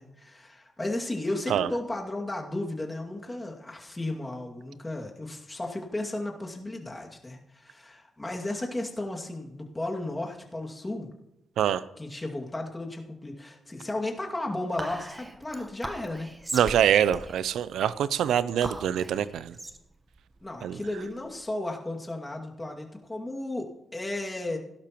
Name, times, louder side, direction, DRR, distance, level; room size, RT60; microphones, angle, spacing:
voice 1, 0.0-11.1 12.0-16.3 20.4-24.6, left 2 dB, 20° left, 0 dB, 2.3 m, -34 dB
Whispering, 14.8-21.4, right 2 dB, 25° right, 1.2 m, -40 dB
voice 2, 16.5-19.6 20.6-20.8, right 9 dB, 85° right, 16 dB, 0.5 m, -24 dB
16.5 x 12.0 x 3.0 m, 0.90 s
cardioid pair, 60°, 0 cm